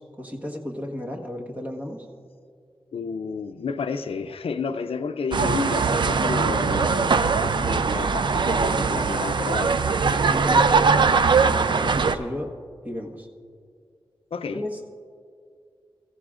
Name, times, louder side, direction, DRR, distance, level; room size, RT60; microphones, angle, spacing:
voice 1, 0.0-2.0 10.1-12.5 12.8-13.3 14.5-14.8, left 1 dB, 15° right, -1 dB, 1.4 m, -34 dB
voice 2, 2.9-9.8 14.3-14.6, left 5 dB, 80° left, 9 dB, 0.5 m, -31 dB
sound 1, 5.3-12.1, right 5 dB, 55° right, 0.5 m, -21 dB
23.0 x 14.5 x 2.5 m, 2.2 s
wide cardioid pair, 120°, 10 cm